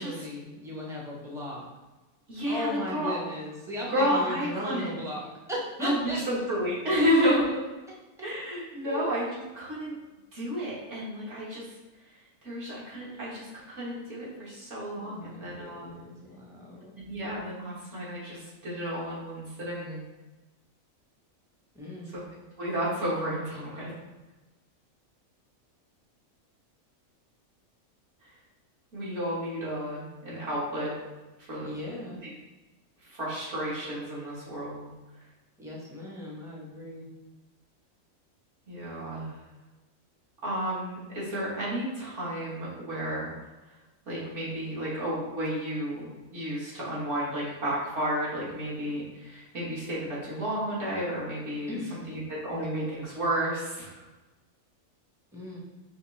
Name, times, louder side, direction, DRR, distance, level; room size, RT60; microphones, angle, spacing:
voice 1, 0.0-1.6 2.5-6.2 6.9-7.3 8.8-9.1 14.9-16.9 21.7-22.1 31.6-32.2 35.6-37.1 51.7-52.0 55.3-55.6, left 1 dB, 5° right, -4 dB, 0.7 m, -37 dB
voice 2, 2.3-3.1 3.9-4.9 5.8-7.6 8.2-9.2 9.5-10.0 10.3-11.7 12.4-15.9 17.0-20.0 22.1-22.2 22.6-23.8 28.9-30.9 31.5-31.7 33.0-34.9 38.7-39.4 40.4-43.3 44.1-46.1 46.3-54.0, equal, 55° right, -7 dB, 1.6 m, -31 dB
5.0 x 3.1 x 3.2 m, 1.1 s
omnidirectional pair, 1.5 m